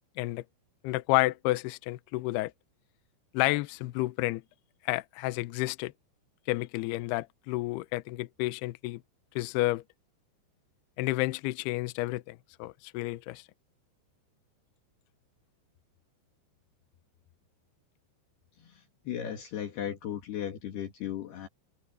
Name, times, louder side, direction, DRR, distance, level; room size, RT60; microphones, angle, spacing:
voice 1, 0.8-2.5 3.3-4.4 4.8-5.9 6.5-9.0 9.4-9.8 11.0-13.4, left 19 dB, 80° left, 2.4 m, -30 dB
voice 2, 18.6-21.5, left 10 dB, 65° left, 3.8 m, -36 dB
omnidirectional pair, 5.4 m